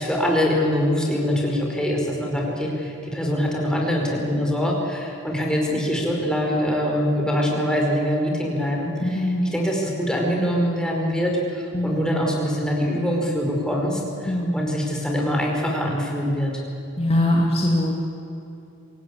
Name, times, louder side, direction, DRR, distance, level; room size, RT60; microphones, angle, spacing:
voice 1, 0.0-16.5, equal, 5° left, -1 dB, 4.8 m, -24 dB
voice 2, 9.0-9.5 11.7-12.1 14.3-14.6 17.0-17.9, left 1 dB, 30° left, -1 dB, 2.1 m, -22 dB
26.0 x 18.0 x 8.5 m, 2.8 s
head